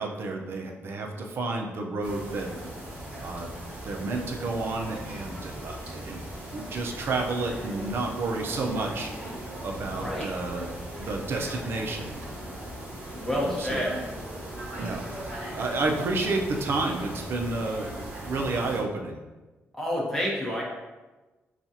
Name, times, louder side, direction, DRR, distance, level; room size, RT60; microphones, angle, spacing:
voice 1, 0.0-2.5 3.2-3.5 3.8-6.2 6.5-9.4 9.6-10.7 11.0-12.2 13.3-13.8 14.8-19.2, right 3 dB, 55° right, 2 dB, 0.6 m, -31 dB
sound 1, 2.0-18.8, right 1 dB, 25° right, 1.3 m, -38 dB
voice 2, 10.0-10.3 13.1-13.9 19.7-20.6, left 1 dB, 5° left, -4 dB, 1.0 m, -29 dB
5.9 x 2.4 x 2.8 m, 1.2 s
cardioid pair, 130°, 5 cm